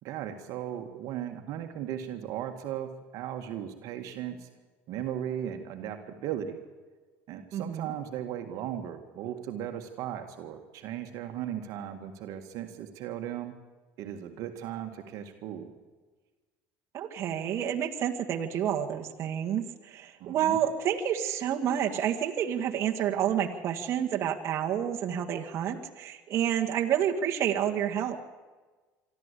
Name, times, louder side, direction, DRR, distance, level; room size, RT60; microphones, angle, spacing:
voice 1, 0.0-4.5 4.9-6.6 7.3-13.5 14.0-15.7 20.2-20.6, right 10 dB, 65° right, 5 dB, 1.9 m, -37 dB
voice 2, 7.5-7.9 16.9-28.2, right 9 dB, 50° right, 1 dB, 1.9 m, -29 dB
24.0 x 13.5 x 8.4 m, 1.3 s
supercardioid pair, 105°, 6 cm